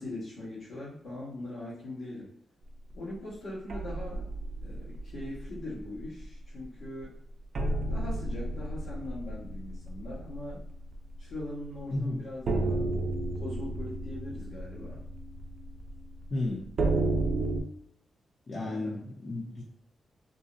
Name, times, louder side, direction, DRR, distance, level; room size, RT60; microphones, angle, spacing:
voice 1, 0.0-2.3 2.9-4.3 4.6-7.2 7.9-10.6 11.2-12.9 13.4-15.0 18.6-19.1, left 1 dB, 85° left, -12 dB, 1.2 m, -41 dB
sound 1, 3.7-5.6 6.0-6.2 6.6-6.7 7.5-11.4 11.7-11.8 12.5-17.6, right 2 dB, 55° right, 0.5 m, -32 dB
voice 2, 16.3-16.6 18.5-19.0 19.2-19.6, left 2 dB, 45° left, -6 dB, 0.6 m, -32 dB
3.7 x 2.0 x 2.5 m, 0.69 s
wide cardioid pair, 125°, 0 cm